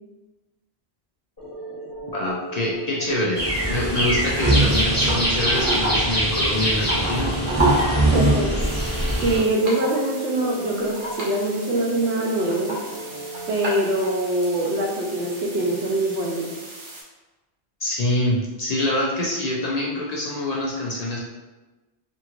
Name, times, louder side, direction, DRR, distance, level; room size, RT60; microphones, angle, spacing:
sound 1, 1.4-13.8, right 2 dB, 20° left, 1.1 m, -36 dB
voice 1, 2.1-3.4 3.7-7.4 17.8-21.2, left 1 dB, 55° left, -4 dB, 0.5 m, -25 dB
sound 2, 3.4-9.4, right 1 dB, 15° right, 1.2 m, -21 dB
voice 2, 8.1-8.7 9.2-12.8 13.5-16.5, right 1 dB, 85° right, 0 dB, 0.9 m, -23 dB
sound 3, 8.6-17.0, right 1 dB, 55° right, 0.9 m, -37 dB
2.9 x 2.7 x 2.4 m, 1.1 s
omnidirectional pair, 1.1 m